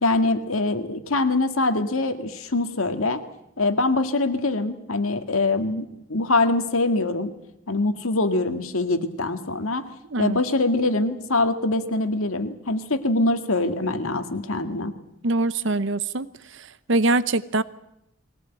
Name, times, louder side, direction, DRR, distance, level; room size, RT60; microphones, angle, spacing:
voice 1, 0.0-3.2 3.6-7.3 7.7-9.9 10.2-14.9, left 2 dB, 85° left, 8 dB, 2.0 m, -23 dB
voice 2, 15.2-16.3 16.9-17.6, right 2 dB, 60° right, 16 dB, 0.9 m, -22 dB
21.5 x 18.5 x 9.1 m, 0.81 s
head